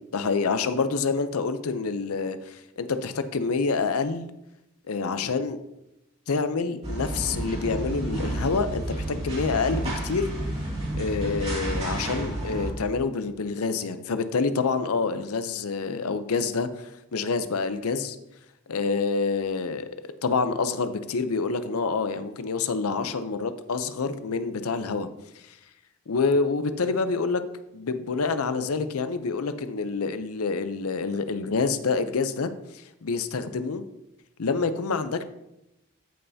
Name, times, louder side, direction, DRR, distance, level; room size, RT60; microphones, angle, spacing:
voice 1, 0.1-4.3 4.9-5.6 6.3-10.3 11.0-18.2 18.7-19.9 20.2-25.1 26.1-27.4 27.7-32.5 33.0-33.8 34.4-35.2, left 4 dB, 85° left, 11 dB, 0.6 m, -27 dB
sound 1, 6.8-12.7, right 1 dB, 30° right, 2.6 m, -30 dB
14.0 x 5.5 x 2.8 m, 0.88 s
head